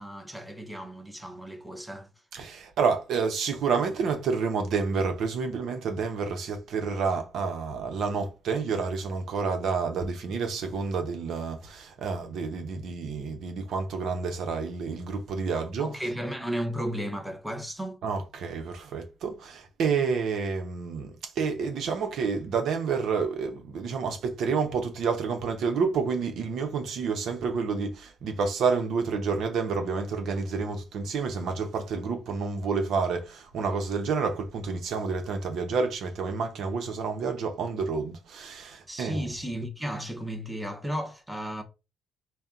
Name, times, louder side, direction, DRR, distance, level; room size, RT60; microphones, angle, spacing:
voice 1, 0.0-2.1 15.5-18.0 38.9-41.6, equal, 5° right, 0.9 m, -34 dB
voice 2, 2.3-15.9 18.0-39.2, right 5 dB, 75° right, 0.9 m, -29 dB
4.2 x 2.3 x 3.7 m
cardioid pair, 90°, 0 cm